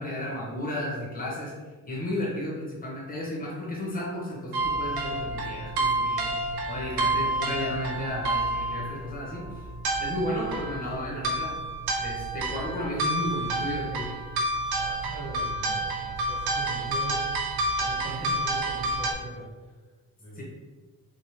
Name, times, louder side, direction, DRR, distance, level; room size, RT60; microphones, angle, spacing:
voice 1, 0.0-1.5 1.9-6.3 6.7-9.7 10.0-11.5 12.0-14.1 18.0-18.4 20.4-20.5, left 1 dB, 25° left, -5 dB, 1.3 m, -33 dB
sound 1, 4.5-19.1, right 2 dB, 85° right, 0.8 m, -29 dB
voice 2, 14.7-17.3 17.6-19.7 20.2-20.4, right 2 dB, 15° right, -7 dB, 0.7 m, -41 dB
4.0 x 3.6 x 3.1 m, 1.4 s
wide cardioid pair, 165°, 36 cm